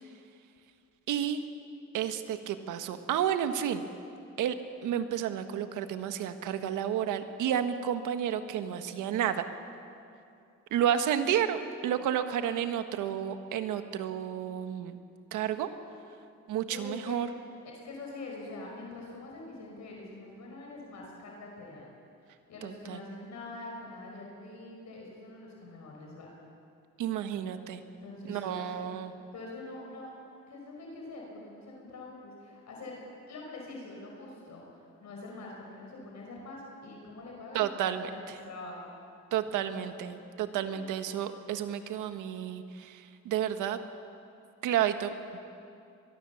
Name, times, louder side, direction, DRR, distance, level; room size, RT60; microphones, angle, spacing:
voice 1, 1.1-1.4 1.9-3.8 4.4-4.6 4.8-9.4 10.7-15.0 15.3-15.7 16.5-17.3 22.6-23.0 27.0-27.8 28.2-29.1 37.5-38.4 39.3-43.8 44.6-45.4, right 10 dB, 90° right, 8 dB, 1.5 m, -31 dB
voice 2, 16.7-17.2 17.7-21.9 22.5-26.3 27.4-27.5 28.0-28.7 29.3-30.1 30.5-33.0 33.3-38.9 39.4-39.8 40.5-40.8, left 2 dB, 65° left, -1 dB, 5.4 m, -44 dB
23.5 x 21.5 x 7.2 m, 2.5 s
cardioid pair, 90°, 30 cm